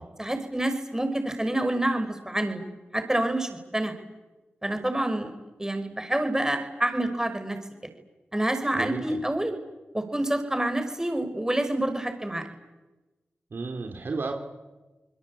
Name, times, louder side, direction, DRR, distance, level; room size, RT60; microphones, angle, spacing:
voice 1, 0.2-2.6 2.9-4.0 4.6-5.3 5.6-7.6 8.3-9.5 9.9-12.4, right 1 dB, 15° right, 7 dB, 5.8 m, -27 dB
voice 2, 8.7-9.2 13.5-14.3, right 3 dB, 60° right, 3 dB, 3.1 m, -33 dB
29.0 x 21.0 x 8.8 m, 1.1 s
cardioid pair, 45°, 4 cm